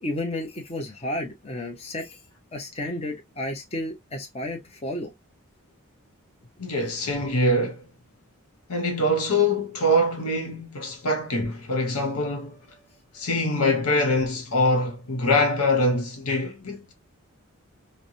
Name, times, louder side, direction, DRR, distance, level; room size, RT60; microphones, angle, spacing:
voice 1, 0.0-2.2 2.5-5.1, left 1 dB, 25° left, 0.8 m, -32 dB
voice 2, 6.6-7.9 8.7-12.6 13.1-16.9, left 1 dB, 85° left, 1.0 m, -24 dB
3.2 x 2.1 x 2.6 m
head